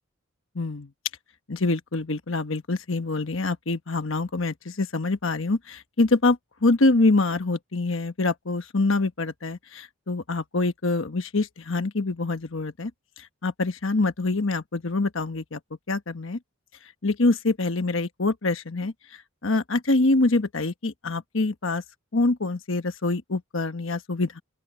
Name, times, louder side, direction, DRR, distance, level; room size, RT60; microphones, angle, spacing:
voice 1, 0.5-0.9 1.5-12.9 13.2-15.6 15.9-16.4 17.0-21.8 22.1-24.4, left 2 dB, 65° left, 1.2 m, -25 dB
open air
head